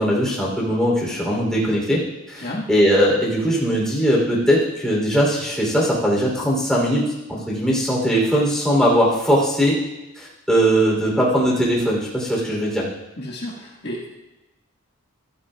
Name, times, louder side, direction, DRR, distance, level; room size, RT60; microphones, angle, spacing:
voice 1, 0.0-9.8 10.1-12.9, equal, 5° left, -4 dB, 2.8 m, -20 dB
voice 2, 13.2-14.1, left 1 dB, 50° left, -4 dB, 1.4 m, -31 dB
15.0 x 13.5 x 2.2 m, 1.0 s
head